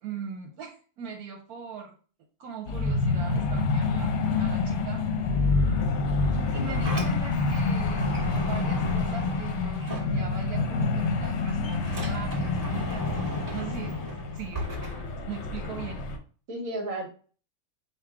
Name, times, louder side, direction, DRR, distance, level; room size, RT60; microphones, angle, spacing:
voice 1, 0.0-1.9 2.4-4.1 4.4-5.0 6.5-8.1 8.5-13.1 13.5-14.1 14.3-14.6 15.3-16.1, right 6 dB, 80° right, 1 dB, 1.2 m, -39 dB
sound 1, 2.7-16.2, left 3 dB, 60° left, 0.8 m, -27 dB
Sliding door, 6.5-10.7 11.0-15.7, right 1 dB, 15° right, 1.2 m, -39 dB
voice 2, 6.5-7.0 16.5-17.1, right 1 dB, 60° right, 3 dB, 1.5 m, -35 dB
5.4 x 2.2 x 3.6 m, 0.40 s
omnidirectional pair, 1.6 m